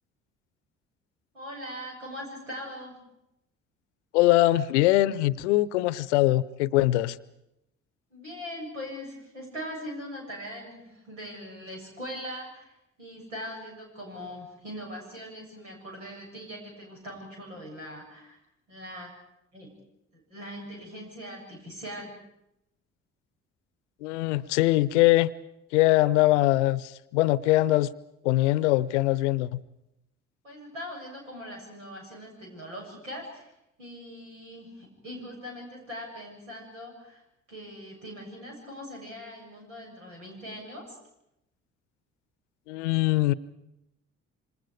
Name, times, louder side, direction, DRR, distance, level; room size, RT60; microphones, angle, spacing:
voice 1, 1.3-3.0 8.1-12.7 13.0-18.4 18.7-19.1 19.5-19.7 20.1-22.1 30.4-33.5 33.8-37.2 37.5-41.0, equal, 80° right, 7.6 m, -41 dB
voice 2, 4.1-7.2 24.0-25.3 25.7-27.9 28.2-29.6 42.7-43.3, left 17 dB, 70° left, 0.8 m, -22 dB
27.5 x 26.0 x 5.1 m
figure-of-eight pair, 50°, 37 cm